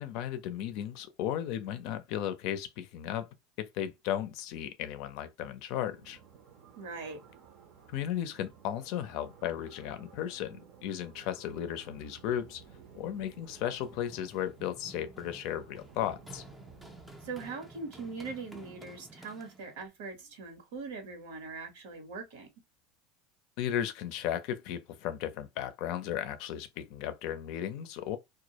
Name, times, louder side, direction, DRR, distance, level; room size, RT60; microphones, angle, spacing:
voice 1, 0.0-3.3 3.6-6.2 7.9-12.6 12.9-16.4 23.6-28.2, left 10 dB, 60° left, 0.4 m, -35 dB
sound 1, 5.9-17.5, right 7 dB, 50° right, 0.6 m, -56 dB
voice 2, 6.8-7.2 17.2-22.5, right 4 dB, 85° right, 1.0 m, -41 dB
Run, 13.5-19.9, right 1 dB, 5° right, 0.5 m, -52 dB
2.2 x 2.0 x 2.8 m
supercardioid pair, 140°, 0 cm